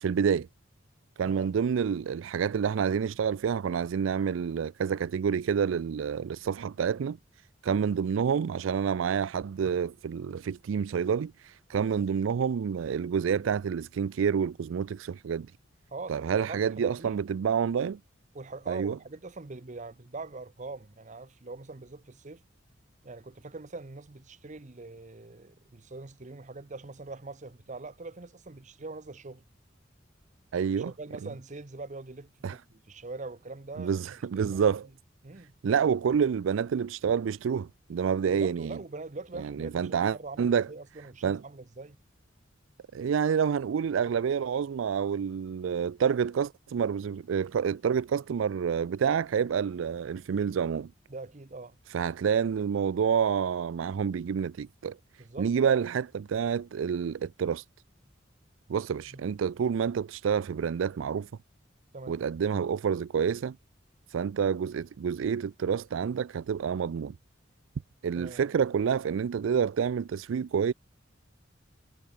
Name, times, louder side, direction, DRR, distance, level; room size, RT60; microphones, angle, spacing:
voice 1, 0.0-0.5 1.2-7.2 7.6-15.5 16.1-18.0 18.7-19.0 30.5-30.9 32.4-32.6 33.8-34.9 35.6-38.8 39.4-40.7 41.2-41.4 42.9-50.9 51.9-55.0 55.4-57.6 58.7-61.3 62.1-63.6 64.1-67.2 68.0-70.7, right 7 dB, 85° right, 0.4 m, -28 dB
voice 2, 15.9-17.2 18.3-22.4 23.0-29.4 30.8-34.6 35.2-35.6 38.3-42.0 51.1-51.8 55.2-55.7 59.1-59.2 61.9-62.2 68.1-68.4, right 3 dB, 40° right, 0.9 m, -43 dB
head